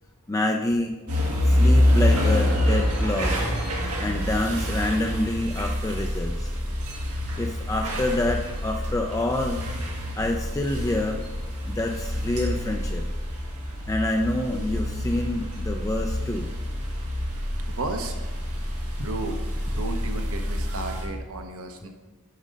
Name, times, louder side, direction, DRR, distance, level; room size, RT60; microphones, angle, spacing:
voice 1, 0.3-0.9 1.4-3.4 4.0-6.5 7.4-9.6 10.2-11.2 11.7-13.0 13.9-16.5, left 1 dB, 15° left, 2 dB, 0.4 m, -27 dB
sound 1, 1.1-21.0, left 1 dB, 85° right, 1.9 m, -26 dB
voice 2, 17.7-18.1 19.0-19.4 19.8-21.9, right 2 dB, 65° right, 5 dB, 1.0 m, -33 dB
7.3 x 5.3 x 5.2 m, 1.2 s
head